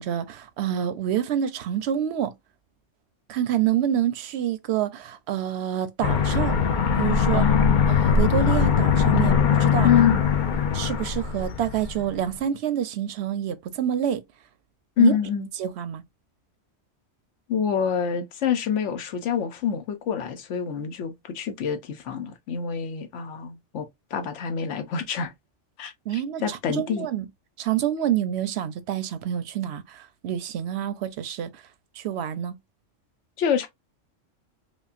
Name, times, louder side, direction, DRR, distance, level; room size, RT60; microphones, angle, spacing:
voice 1, 0.0-2.3 3.3-6.6 6.9-7.4 7.9-9.9 10.7-14.2 15.0-15.1 15.6-16.0 26.1-27.3 27.6-31.6 32.0-32.6, right 10 dB, 65° right, 0.8 m, -27 dB
Aircraft, 6.0-12.1, left 7 dB, 50° left, 0.6 m, -21 dB
voice 2, 7.3-8.0 9.8-10.2 15.0-15.5 17.5-25.3 25.8-25.9 26.4-27.1 33.4-33.7, left 8 dB, 70° left, 1.0 m, -26 dB
5.1 x 2.2 x 2.5 m
omnidirectional pair, 1.3 m